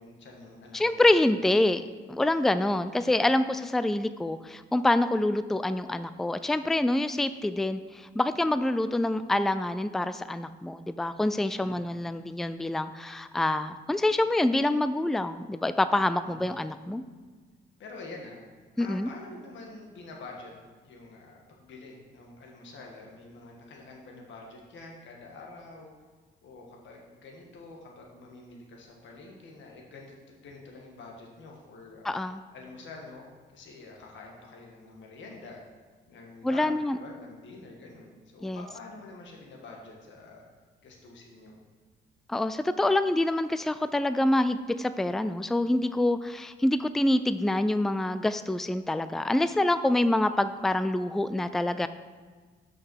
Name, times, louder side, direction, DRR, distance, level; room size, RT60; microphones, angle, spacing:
voice 1, 0.0-1.1 11.5-11.9 16.2-16.4 17.8-18.4 18.7-20.5 20.8-25.9 26.4-32.1 32.5-33.3 33.5-35.6 36.1-40.4 40.8-41.5, left 3 dB, 70° left, -1 dB, 1.7 m, -47 dB
voice 2, 0.7-1.8 2.1-17.0 18.8-19.1 32.0-32.4 36.4-37.0 38.4-38.6 42.3-51.9, left 1 dB, ahead, 12 dB, 0.3 m, -26 dB
6.4 x 5.9 x 6.3 m, 1.4 s
cardioid pair, 90°, 20 cm